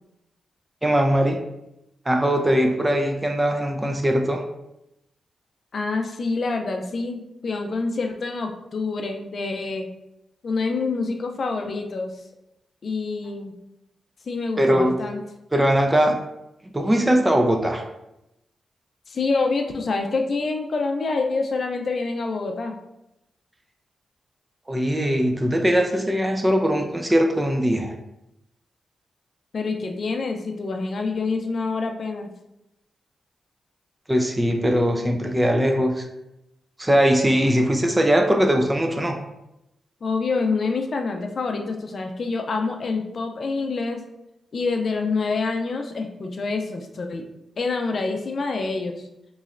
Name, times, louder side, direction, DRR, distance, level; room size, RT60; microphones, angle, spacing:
voice 1, 0.8-1.4 2.1-4.4 14.6-14.9 15.5-16.2 16.7-17.8 24.7-27.9 34.1-36.1 36.8-39.2, equal, 15° right, 3 dB, 0.5 m, -20 dB
voice 2, 5.7-9.9 10.4-12.1 12.8-13.5 14.3-15.2 19.1-22.8 29.5-32.3 40.0-44.0 44.5-47.3 47.6-49.0, left 3 dB, 60° left, 4 dB, 0.5 m, -26 dB
4.0 x 3.0 x 2.5 m, 0.87 s
cardioid pair, 75°, 0 cm